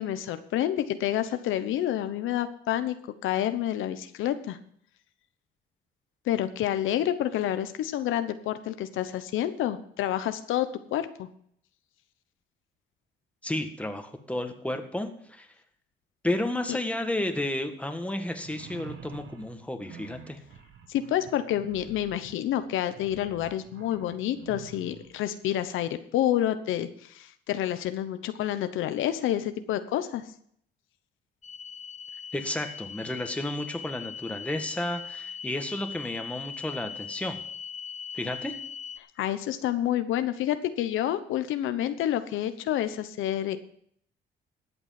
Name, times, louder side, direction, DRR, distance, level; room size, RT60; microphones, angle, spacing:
voice 1, 0.0-3.0 3.2-4.6 6.3-11.3 16.7-16.8 20.9-30.2 39.2-43.7, left 12 dB, 85° left, 10 dB, 1.0 m, -29 dB
voice 2, 13.4-15.5 16.2-20.4 32.3-37.4 38.1-38.5, left 1 dB, 5° left, 5 dB, 1.8 m, -32 dB
sound 1, 18.3-25.1, right 8 dB, 70° right, 1.7 m, -48 dB
sound 2, 31.4-39.0, left 7 dB, 35° left, 0.9 m, -40 dB
13.5 x 8.1 x 5.9 m, 0.64 s
cardioid pair, 90°, 20 cm